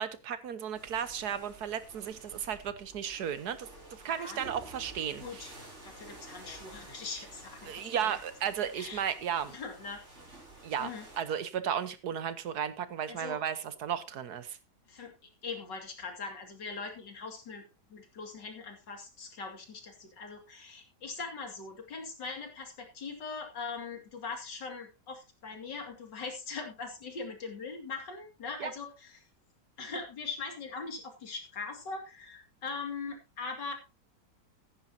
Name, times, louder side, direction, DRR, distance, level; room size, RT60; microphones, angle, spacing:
voice 1, 0.0-3.7 4.0-5.5 7.6-9.6 10.6-10.9 11.2-14.6 28.6-28.7, right 8 dB, 65° right, 13 dB, 1.5 m, -34 dB
sound 1, 0.7-11.2, right 2 dB, 40° right, 4.4 m, -51 dB
voice 2, 4.0-4.4 5.2-5.5 5.8-8.2 8.7-9.0 9.5-10.0 10.8-11.1 13.1-13.4 14.9-15.1 15.4-17.6 17.9-29.2 29.8-33.7, left 4 dB, 85° left, 3 dB, 3.0 m, -41 dB
15.0 x 10.5 x 2.8 m, 0.27 s
omnidirectional pair, 1.8 m